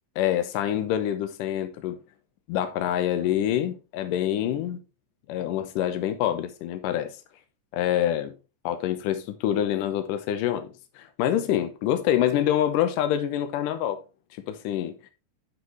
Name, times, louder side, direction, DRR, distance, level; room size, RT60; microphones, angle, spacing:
voice 1, 0.2-2.0 2.5-4.8 5.3-7.2 7.7-8.3 8.6-14.0 14.5-15.0, left 11 dB, 80° left, 2.4 m, -26 dB
10.5 x 4.8 x 3.4 m
omnidirectional pair, 4.0 m